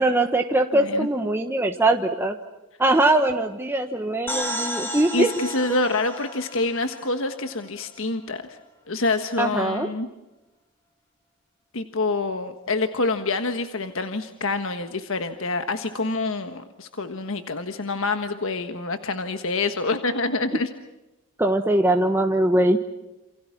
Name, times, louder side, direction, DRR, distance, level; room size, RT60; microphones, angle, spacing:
voice 1, 0.0-2.4 2.8-5.3 9.4-9.9 21.4-22.8, right 1 dB, 10° right, 4 dB, 1.2 m, -21 dB
voice 2, 0.7-1.1 5.1-8.6 8.9-10.1 11.7-20.7, left 3 dB, 60° left, 8 dB, 1.4 m, -26 dB
sound 1, 4.3-7.9, equal, 10° left, 5.5 m, -33 dB
28.5 x 28.0 x 6.0 m, 1.0 s
head